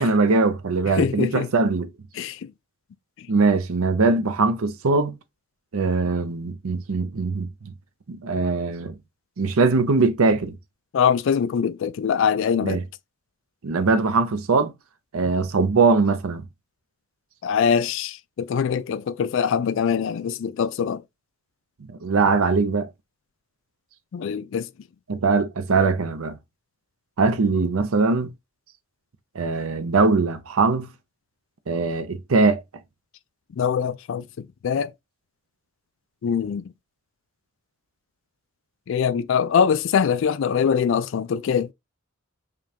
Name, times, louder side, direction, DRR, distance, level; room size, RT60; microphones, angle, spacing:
voice 1, 0.0-1.9 3.3-5.2 5.7-7.7 8.1-8.9 9.4-10.5 12.6-12.8 13.6-14.7 15.1-16.5 22.0-22.9 25.1-26.4 27.2-28.3 29.3-30.9 31.7-32.6, right 4 dB, 85° right, 0.6 m, -21 dB
voice 2, 1.0-1.5 2.2-2.5 3.2-3.3 10.9-12.8 17.4-21.0 24.1-24.7 33.5-34.9 36.2-36.7 38.9-41.7, left 7 dB, 60° left, 0.3 m, -23 dB
5.1 x 2.3 x 2.8 m
head